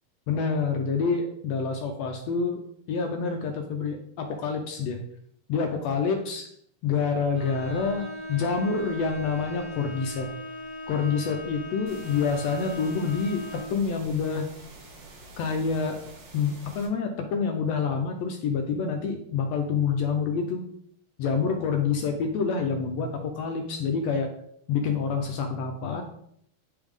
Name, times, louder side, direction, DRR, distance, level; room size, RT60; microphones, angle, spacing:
voice 1, 0.3-2.6 2.9-5.0 5.5-6.5 6.8-10.3 10.9-14.5 15.4-16.0 16.3-20.6 21.2-24.3 24.7-26.0, left 5 dB, 80° left, 4 dB, 1.5 m, -27 dB
Bowed string instrument, 7.3-13.8, left 1 dB, 35° left, 1.3 m, -38 dB
sound 1, 11.9-16.9, right 3 dB, 70° right, 2.8 m, -48 dB
8.9 x 3.5 x 3.5 m, 0.69 s
omnidirectional pair, 3.6 m